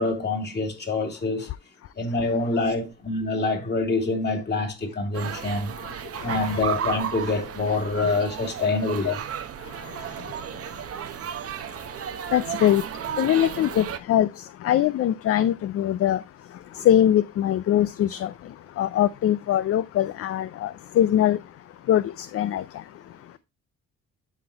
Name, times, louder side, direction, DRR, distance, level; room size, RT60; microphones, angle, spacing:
voice 1, 0.0-1.5 2.0-5.7 6.2-9.2, left 3 dB, 35° left, 2.5 m, -26 dB
sound 1, 5.1-14.0, right 9 dB, 50° right, 0.8 m, -34 dB
voice 2, 5.8-6.7 9.0-9.2 9.6-23.4, left 11 dB, 50° left, 0.4 m, -24 dB
11.5 x 3.9 x 2.8 m
cardioid pair, 90°, 30 cm